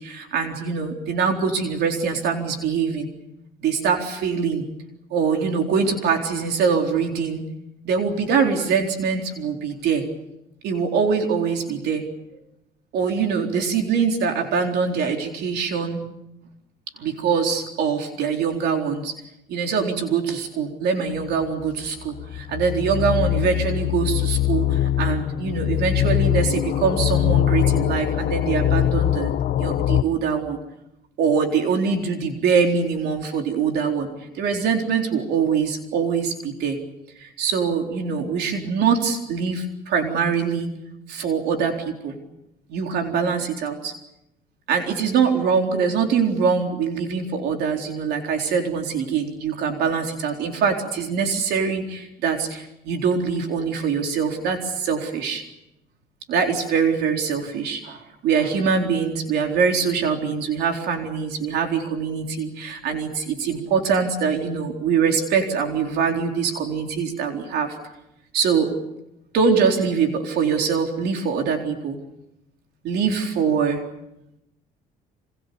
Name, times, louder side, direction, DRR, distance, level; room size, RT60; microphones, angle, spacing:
voice 1, 0.0-3.1 3.6-4.6 5.1-7.4 7.8-10.0 10.6-12.0 12.9-16.0 17.0-19.1 19.5-29.3 29.6-30.6 31.2-34.1 34.4-36.8 37.2-40.7 41.1-42.1 42.7-43.9 44.7-55.4 56.3-67.8 68.3-68.7 69.3-72.0 72.8-73.8, right 6 dB, 75° right, 3 dB, 4.0 m, -23 dB
sound 1, 21.2-30.0, left 12 dB, 60° left, 1.0 m, -22 dB
27.0 x 26.5 x 7.0 m, 0.86 s
cardioid pair, 110°, 17 cm